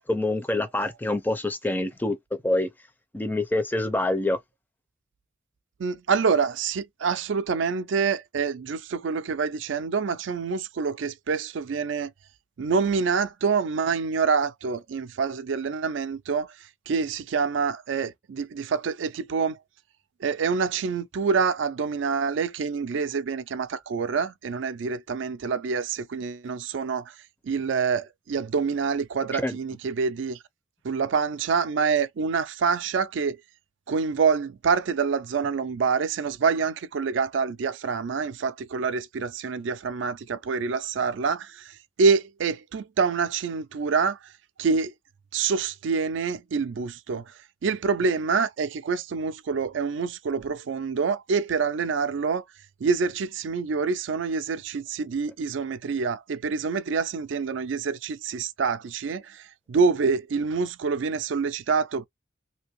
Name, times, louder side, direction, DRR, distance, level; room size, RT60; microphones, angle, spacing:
voice 1, 0.1-2.2 2.4-2.7 3.1-4.4 29.3-29.6, left 2 dB, 10° left, 0.4 m, -26 dB
voice 2, 5.8-12.1 12.6-16.5 16.9-19.6 20.2-27.1 27.4-30.4 30.8-33.4 33.9-41.6 42.0-44.2 44.6-44.9 45.3-47.3 47.6-52.4 52.8-62.1, right 5 dB, 75° right, 0.4 m, -26 dB
2.7 x 2.6 x 3.0 m
head